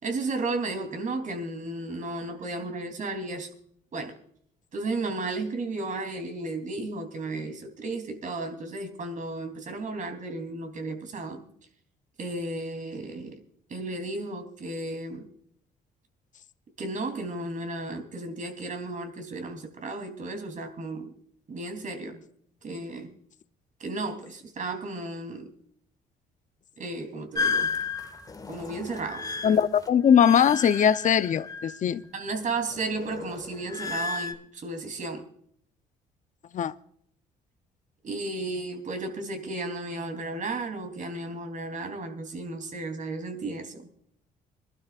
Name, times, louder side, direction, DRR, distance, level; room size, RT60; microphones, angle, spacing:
voice 1, 0.0-3.5 3.9-4.1 4.7-11.4 12.2-13.4 13.7-15.3 16.8-21.1 21.5-22.2 22.6-23.1 23.8-25.5 26.8-27.7 28.5-29.2 32.1-35.3 38.0-43.9, right 2 dB, 50° right, 5 dB, 3.3 m, -34 dB
sound 1, 27.3-32.1 32.4-34.3, left 4 dB, 20° left, 1.8 m, -33 dB
voice 2, 29.4-32.0 36.5-36.7, left 8 dB, 50° left, 13 dB, 0.7 m, -21 dB
25.5 x 12.0 x 2.5 m, 0.67 s
cardioid pair, 85°, 17 cm